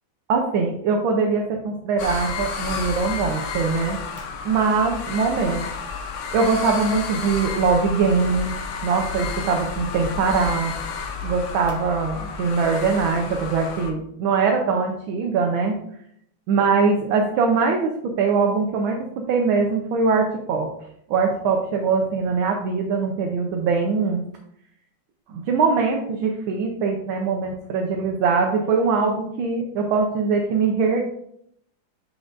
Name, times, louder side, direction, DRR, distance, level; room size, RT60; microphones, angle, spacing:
voice 1, 0.3-4.0 4.4-5.7 6.3-8.5 8.8-10.7 11.2-15.8 16.5-20.7 21.1-24.2 25.3-31.0, right 4 dB, 90° right, 1 dB, 1.6 m, -22 dB
sound 1, 2.0-13.9, left 5 dB, 60° left, 0.8 m, -31 dB
6.4 x 6.1 x 2.5 m, 0.72 s
omnidirectional pair, 2.1 m